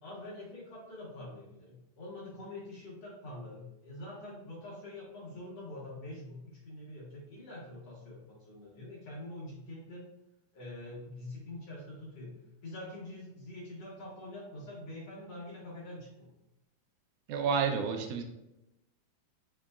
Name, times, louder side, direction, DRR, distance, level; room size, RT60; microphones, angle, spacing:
voice 1, 0.0-10.1 10.5-16.3, left 1 dB, 60° left, -6 dB, 2.2 m, -45 dB
voice 2, 17.3-18.2, right 6 dB, 80° right, 4 dB, 2.1 m, -30 dB
5.6 x 3.9 x 2.3 m, 0.90 s
omnidirectional pair, 3.7 m